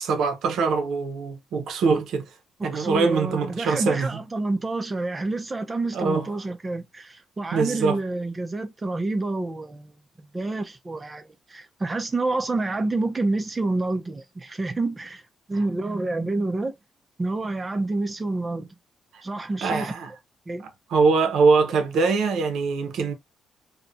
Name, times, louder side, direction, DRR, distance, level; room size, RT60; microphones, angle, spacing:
voice 1, 0.0-2.3 2.6-4.1 5.9-6.3 7.5-8.0 19.1-19.2 19.6-20.1 20.9-23.1, right 4 dB, 75° right, 0.5 m, -23 dB
voice 2, 2.7-9.9 10.2-15.2 15.5-16.7 17.2-18.7 19.2-19.9 20.5-20.6, right 2 dB, 20° right, 0.4 m, -28 dB
2.4 x 2.0 x 2.5 m
cardioid pair, 135°, 0 cm